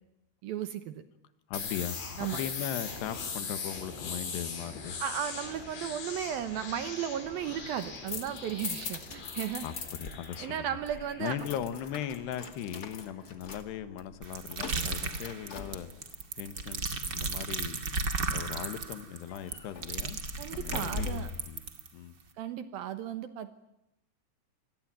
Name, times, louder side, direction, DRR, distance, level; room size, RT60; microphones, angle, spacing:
voice 1, 0.4-0.9 2.2-2.4 5.0-9.6 10.4-11.4 20.4-21.3 22.4-23.5, right 10 dB, 70° right, 11 dB, 2.5 m, -35 dB
sound 1, 1.5-13.2, left 5 dB, 90° left, 7.1 m, -41 dB
voice 2, 1.5-5.0 9.6-10.8 11.2-15.9 16.4-17.8 18.3-21.2 21.5-21.6 21.9-22.2, left 10 dB, 70° left, 11 dB, 3.6 m, -38 dB
sound 2, 7.6-10.4 10.6-16.2 19.3-21.5, left 4 dB, 35° left, 1.5 m, -41 dB
sound 3, 14.2-21.9, right 4 dB, 40° right, 1.6 m, -34 dB
27.5 x 21.0 x 9.2 m, 0.83 s
omnidirectional pair, 5.1 m